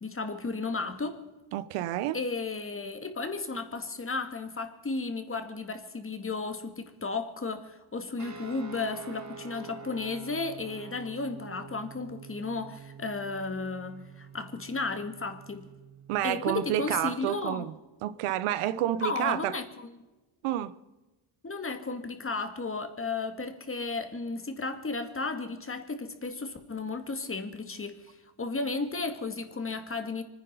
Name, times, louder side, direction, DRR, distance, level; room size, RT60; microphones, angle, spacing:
voice 1, 0.0-1.2 2.1-15.7 16.2-17.7 19.0-19.9 21.4-30.2, left 3 dB, 25° left, 2.2 m, -34 dB
voice 2, 1.5-2.2 16.1-17.7 18.0-19.6 20.4-20.8, right 13 dB, 90° right, 0.9 m, -29 dB
sound 1, 8.2-17.1, right 5 dB, 35° right, 2.0 m, -47 dB
25.5 x 10.0 x 5.5 m
cardioid pair, 85°, 50 cm